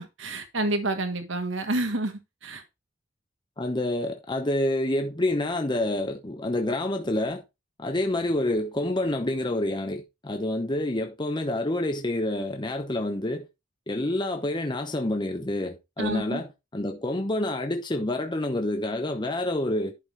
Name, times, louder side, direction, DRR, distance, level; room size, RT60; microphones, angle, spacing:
voice 1, 0.0-2.6 16.0-16.4, right 2 dB, 85° right, 1.4 m, -29 dB
voice 2, 3.6-7.4 7.8-13.5 13.9-16.5 16.7-19.9, left 1 dB, 25° left, 0.9 m, -28 dB
11.5 x 5.6 x 3.3 m
head